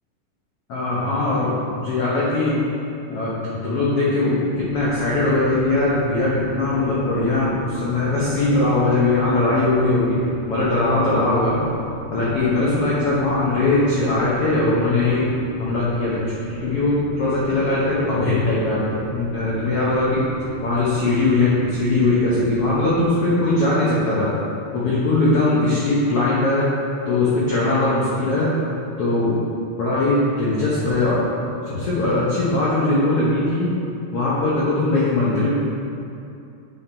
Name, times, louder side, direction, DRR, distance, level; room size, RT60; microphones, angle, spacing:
voice 1, 0.7-2.6 3.1-4.3 4.7-10.2 10.5-11.6 12.1-15.2 15.6-16.2 16.6-18.8 19.1-20.2 20.6-24.3 24.7-26.7 27.1-28.5 29.0-29.4 29.8-31.2 31.6-33.7 34.1-35.5, left 2 dB, 75° left, -8 dB, 1.3 m, -20 dB
sound 1, 4.5-23.0, right 1 dB, 40° right, 2.1 m, -36 dB
9.3 x 4.4 x 4.4 m, 2.6 s
omnidirectional pair, 4.2 m